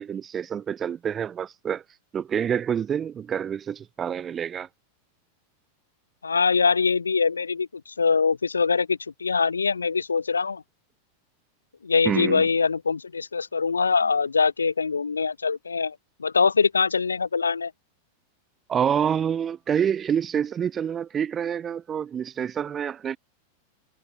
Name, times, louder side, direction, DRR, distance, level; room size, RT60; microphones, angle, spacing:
voice 1, 0.0-1.8 2.1-4.7 12.0-12.4 18.7-23.2, right 8 dB, 25° right, 0.6 m, -27 dB
voice 2, 6.2-10.6 11.8-17.7, left 5 dB, 75° left, 0.4 m, -23 dB
figure-of-eight pair, 90°, 0 cm